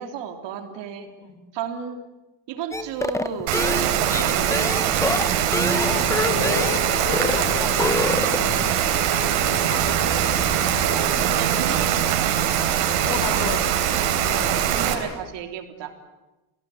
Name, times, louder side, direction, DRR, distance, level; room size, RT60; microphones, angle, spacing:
voice 1, 0.0-1.1 1.5-2.0 2.5-4.9 10.6-10.7 11.2-12.4 14.3-15.9, right 7 dB, 60° right, 6 dB, 3.5 m, -33 dB
sound 1, 2.7-6.9 7.1-7.4 7.7-8.5, left 2 dB, 5° left, 1.0 m, -26 dB
Rain, 3.5-14.9, right 10 dB, 85° right, 3.9 m, -22 dB
voice 2, 4.0-4.3 5.7-9.0 9.5-10.1 10.5-10.7 11.8-12.0 13.0-13.8 14.2-14.7, left 7 dB, 70° left, 10 dB, 4.0 m, -33 dB
sound 2, 5.7-11.1, left 4 dB, 30° left, 2.8 m, -36 dB
27.5 x 18.0 x 9.3 m, 1.1 s
cardioid pair, 150°, 48 cm